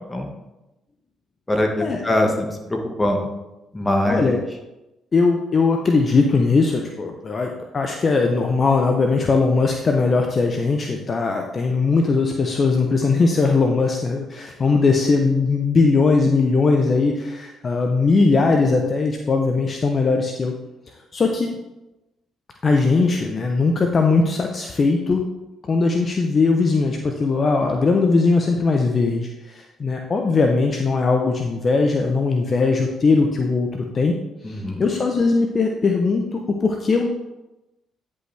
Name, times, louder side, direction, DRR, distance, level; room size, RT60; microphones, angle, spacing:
voice 1, 1.5-3.3 3.7-4.2 34.4-34.8, left 1 dB, 15° left, 2 dB, 1.5 m, -22 dB
voice 2, 4.1-4.4 5.1-20.5 21.1-21.5 22.6-25.2 25.7-34.1 34.5-37.1, left 4 dB, 45° left, 3 dB, 0.7 m, -19 dB
9.6 x 5.4 x 3.4 m, 1.0 s
supercardioid pair, 65°, 0 cm